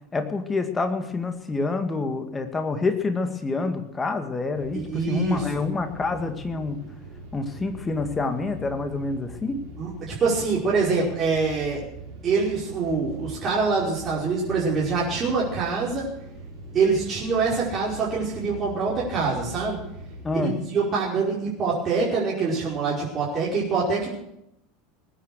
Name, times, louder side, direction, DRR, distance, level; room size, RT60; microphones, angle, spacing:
voice 1, 0.1-6.8 7.3-9.6 20.2-20.5, left 3 dB, 20° left, 7 dB, 2.1 m, -27 dB
sound 1, 4.5-20.3, right 1 dB, 50° right, 5.4 m, -42 dB
voice 2, 4.7-5.5 9.8-11.8 12.2-16.1 16.7-19.8 20.3-24.1, right 4 dB, 35° right, -6 dB, 5.3 m, -25 dB
20.0 x 9.8 x 6.5 m, 0.79 s
figure-of-eight pair, 75°, 0 cm